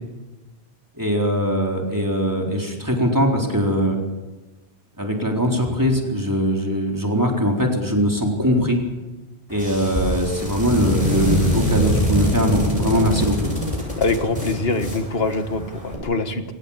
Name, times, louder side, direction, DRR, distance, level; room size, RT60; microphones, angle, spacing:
voice 1, 1.0-4.0 5.0-8.8 9.5-13.5, equal, 20° right, 0 dB, 4.1 m, -21 dB
sound 1, 9.5-15.9, left 1 dB, 35° left, 7.9 m, -24 dB
voice 2, 14.0-16.4, left 3 dB, 70° left, 8 dB, 1.9 m, -23 dB
23.5 x 19.0 x 7.4 m, 1.1 s
omnidirectional pair, 1.1 m